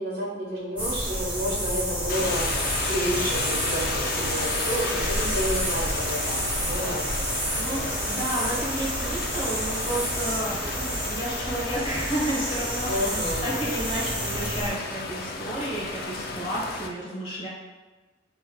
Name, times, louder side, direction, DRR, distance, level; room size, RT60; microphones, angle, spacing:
voice 1, 0.0-7.0 7.6-7.9 12.8-13.6, equal, 50° right, -6 dB, 1.1 m, -30 dB
sound 1, 0.8-14.7, equal, 10° right, 1.3 m, -30 dB
sound 2, 2.1-16.9, left 3 dB, 50° left, 0.3 m, -33 dB
voice 2, 7.6-13.1 13.4-17.5, right 1 dB, 30° left, -6 dB, 1.0 m, -31 dB
4.2 x 3.2 x 2.2 m, 1.2 s
head